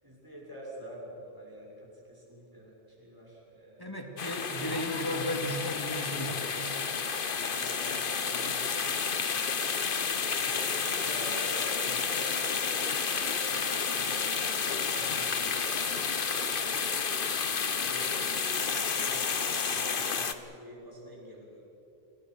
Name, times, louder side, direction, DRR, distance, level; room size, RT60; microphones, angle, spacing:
voice 1, 0.0-4.1 7.5-9.7 10.4-16.9 17.5-21.6, equal, 20° right, -4 dB, 6.9 m, -47 dB
voice 2, 3.8-6.7, equal, 20° left, 3 dB, 2.6 m, -35 dB
sound 1, 4.2-20.3, left 5 dB, 55° left, 1.2 m, -31 dB
28.5 x 20.0 x 6.4 m, 2.8 s
omnidirectional pair, 1.1 m